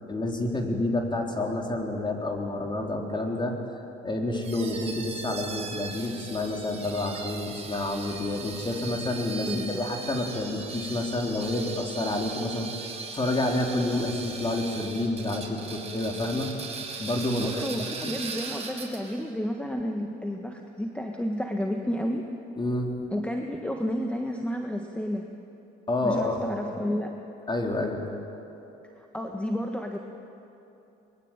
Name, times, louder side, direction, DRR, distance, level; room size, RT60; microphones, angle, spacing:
voice 1, 0.1-3.5 4.0-12.7 13.1-16.5 17.0-18.1 22.6-22.9 25.9-26.4 27.5-28.0, left 2 dB, 25° left, 2 dB, 4.0 m, -29 dB
sound 1, 4.4-19.2, right 4 dB, 35° right, 5.3 m, -39 dB
voice 2, 9.5-9.9 17.4-22.2 23.1-25.3 26.0-27.1 29.0-30.0, equal, 5° left, 3 dB, 1.6 m, -31 dB
23.0 x 22.5 x 9.1 m, 2.9 s
cardioid pair, 100°, 19 cm